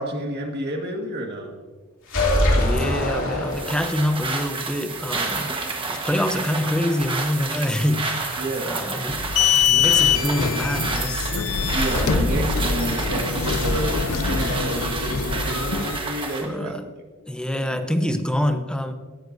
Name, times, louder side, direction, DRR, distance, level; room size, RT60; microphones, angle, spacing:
voice 1, 0.0-1.5 8.4-8.9 10.2-10.3 11.7-17.0 17.7-17.8, right 1 dB, 50° right, 2 dB, 1.7 m, -30 dB
sound 1, 2.1-4.1, left 1 dB, 65° left, 2.9 m, -22 dB
voice 2, 2.5-5.5 5.9-11.3 12.0-12.4 16.4-16.9 17.3-18.9, left 1 dB, 5° left, 7 dB, 0.7 m, -26 dB
sound 2, 3.5-16.5, right 3 dB, 25° right, 1.3 m, -30 dB
sound 3, 9.1-16.0, left 6 dB, 90° left, 0.7 m, -23 dB
17.5 x 11.0 x 2.7 m, 1.5 s
head